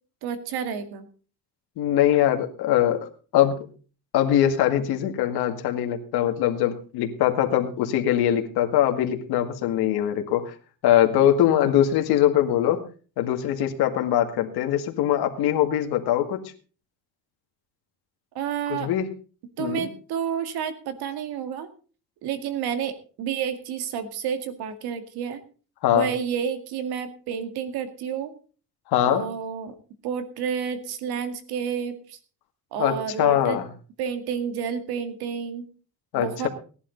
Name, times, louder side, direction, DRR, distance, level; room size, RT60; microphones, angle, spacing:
voice 1, 0.2-1.1 18.3-18.9 19.6-21.7 22.2-25.4 25.9-28.3 29.0-29.8 30.0-32.2 32.7-33.6 34.0-35.7 36.1-36.5, right 7 dB, 80° right, 9 dB, 2.2 m, -30 dB
voice 2, 1.8-3.6 4.1-10.5 10.8-12.8 13.2-16.4 18.7-19.1 19.6-19.9 25.8-26.1 28.9-29.2 32.8-33.7 36.1-36.5, left 11 dB, 80° left, 5 dB, 2.1 m, -22 dB
17.5 x 11.0 x 4.0 m, 0.38 s
cardioid pair, 120°, 37 cm